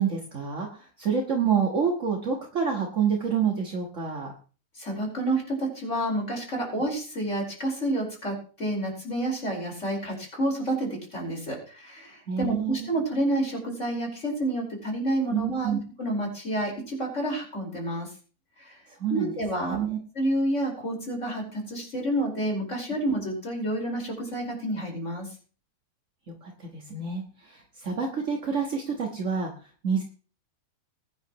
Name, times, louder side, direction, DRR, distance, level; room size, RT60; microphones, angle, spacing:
voice 1, 0.0-4.3 12.3-13.0 15.3-15.8 18.9-19.3 19.6-20.0 26.4-30.0, right 6 dB, 55° right, 0 dB, 2.0 m, -28 dB
voice 2, 4.8-15.7 16.0-18.1 18.6-18.8 19.1-19.8 20.2-25.3, right 1 dB, 50° left, 0 dB, 5.3 m, -29 dB
21.0 x 10.0 x 3.1 m, 0.38 s
omnidirectional pair, 1.6 m